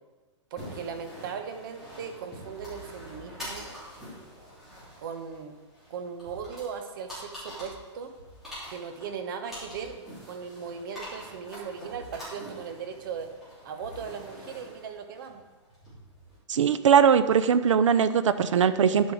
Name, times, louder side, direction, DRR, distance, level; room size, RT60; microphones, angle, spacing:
voice 1, 0.5-3.7 5.0-5.6 5.9-8.1 8.7-9.9 10.3-13.3 13.6-15.4, right 6 dB, 45° right, 7 dB, 1.2 m, -38 dB
sound 1, 0.6-16.4, equal, ahead, 3.8 m, -45 dB
voice 2, 16.5-19.1, right 7 dB, 90° right, 13 dB, 0.7 m, -21 dB
11.0 x 7.4 x 4.7 m, 1.3 s
hypercardioid pair, 170°, 15 cm